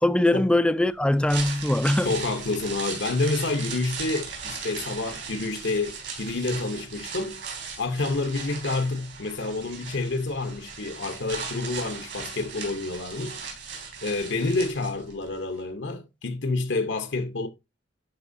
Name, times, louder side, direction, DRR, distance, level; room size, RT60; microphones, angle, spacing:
voice 1, 0.0-2.1, left 1 dB, 5° left, 0.3 m, -22 dB
sound 1, 1.1-15.3 15.6-15.7, right 5 dB, 70° right, 3.4 m, -38 dB
voice 2, 2.0-7.4 7.8-13.4 14.0-17.5, left 3 dB, 85° left, 0.9 m, -28 dB
11.5 x 4.4 x 2.7 m
head